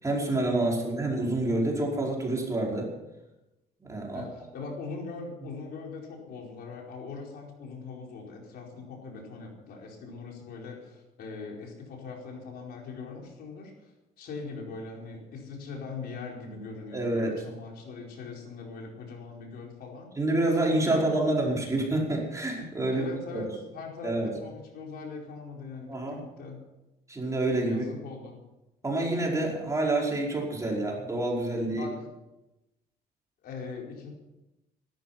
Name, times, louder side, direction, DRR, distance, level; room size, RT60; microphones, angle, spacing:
voice 1, 0.0-2.9 3.8-4.2 16.9-17.3 20.2-23.4 24.0-24.3 25.9-26.2 27.1-27.8 28.8-31.8, right 2 dB, 20° right, -1 dB, 5.1 m, -28 dB
voice 2, 4.1-13.9 14.2-20.1 20.7-21.4 22.9-26.6 27.7-28.4 31.6-31.9 33.4-34.1, left 4 dB, 65° left, 0 dB, 4.7 m, -41 dB
16.0 x 13.0 x 5.9 m, 0.97 s
cardioid pair, 110°, 17 cm